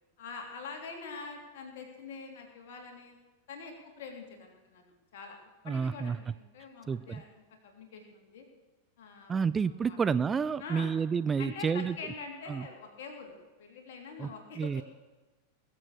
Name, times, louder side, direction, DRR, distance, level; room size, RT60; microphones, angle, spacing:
voice 1, 0.2-3.2 3.5-5.4 5.6-8.4 9.0-9.3 9.6-10.0 10.6-10.9 11.4-14.8, left 4 dB, 55° left, 2 dB, 3.1 m, -45 dB
voice 2, 5.7-6.2 6.9-7.2 9.3-12.0 12.5-12.6 14.2-14.3 14.6-14.8, right 6 dB, 20° right, 15 dB, 0.3 m, -29 dB
20.5 x 7.7 x 6.7 m, 1.2 s
figure-of-eight pair, 90°, 0 cm